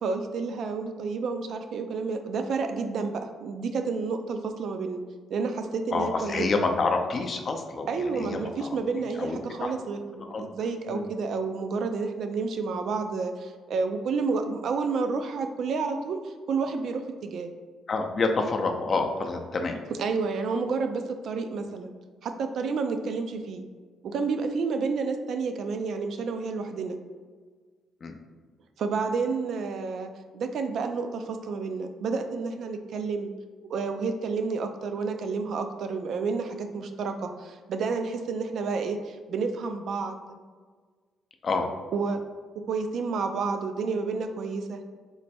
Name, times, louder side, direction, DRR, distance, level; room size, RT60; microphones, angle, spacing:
voice 1, 0.0-5.0 5.3-6.8 7.9-17.5 20.0-21.9 22.2-23.6 24.0-27.0 28.8-33.3 33.7-40.2 41.9-42.2 42.7-44.8, right 4 dB, 65° right, 6 dB, 0.3 m, -30 dB
voice 2, 5.9-8.7 9.2-9.7 10.2-10.5 10.9-11.0 17.9-19.8 28.0-28.2 41.4-41.7, left 3 dB, 45° left, 4 dB, 0.4 m, -28 dB
3.1 x 2.2 x 4.2 m, 1.5 s
cardioid pair, 90°, 0 cm